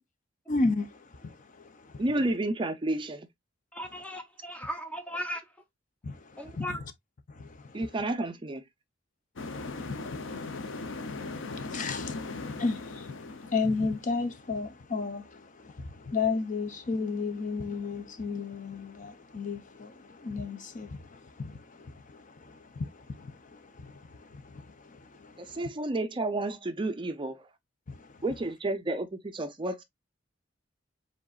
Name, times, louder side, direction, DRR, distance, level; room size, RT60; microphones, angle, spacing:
voice 1, 0.5-2.0 6.0-6.6 7.3-7.8 9.5-10.6 11.5-25.6 27.9-28.1, left 4 dB, 40° left, 0.6 m, -34 dB
voice 2, 2.0-3.3 7.7-8.6 25.4-27.5 28.2-29.8, right 2 dB, 25° right, 0.5 m, -31 dB
voice 3, 3.7-5.5 6.4-6.8, equal, 5° left, 1.0 m, -37 dB
sound 1, 9.4-14.2, left 3 dB, 80° left, 0.6 m, -38 dB
4.9 x 3.8 x 2.4 m
head